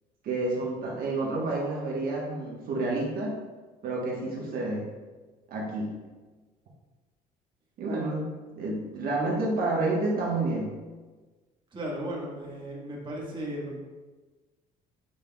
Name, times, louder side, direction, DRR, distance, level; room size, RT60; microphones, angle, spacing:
voice 1, 0.2-3.4 3.8-4.9 5.5-5.9 7.8-10.7, right 2 dB, 60° right, -3 dB, 1.2 m, -29 dB
voice 2, 11.7-13.8, right 1 dB, 30° right, -3 dB, 1.5 m, -35 dB
8.2 x 5.3 x 2.3 m, 1.3 s
cardioid pair, 110°, 17 cm